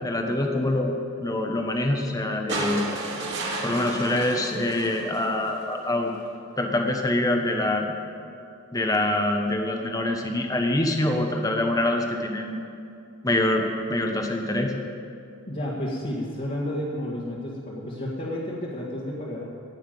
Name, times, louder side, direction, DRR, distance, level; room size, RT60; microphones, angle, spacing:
voice 1, 0.0-2.8 3.6-6.1 6.6-7.9 8.7-12.7 13.2-13.6 13.9-14.7, left 1 dB, 15° left, 3 dB, 1.1 m, -25 dB
sound 1, 2.5-5.8 7.1-7.2, right 2 dB, 55° right, 2.4 m, -32 dB
voice 2, 15.5-19.5, left 1 dB, 40° left, -5 dB, 1.9 m, -31 dB
17.5 x 6.0 x 9.2 m, 2.5 s
head